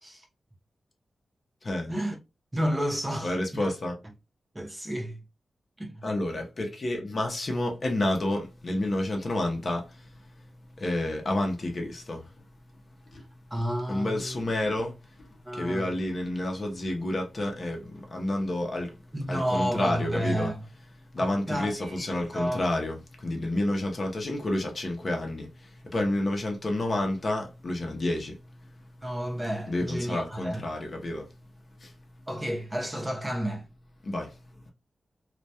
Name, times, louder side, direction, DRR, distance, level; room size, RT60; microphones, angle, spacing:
voice 1, 1.6-2.0 3.2-4.0 6.0-10.1 10.8-12.3 13.1-13.2 13.9-18.9 19.3-20.5 21.1-28.4 29.7-31.3 31.8-31.9 34.0-34.3, left 1 dB, 40° left, 0.6 m, -30 dB
voice 2, 2.5-3.7 4.5-5.2 5.8-6.0 13.5-14.4 15.5-16.0 19.1-20.6 21.2-22.6 23.4-23.5 29.0-30.6 32.3-33.7, equal, 15° right, 0.6 m, -31 dB
2.2 x 2.2 x 2.6 m
wide cardioid pair, 125°, 0 cm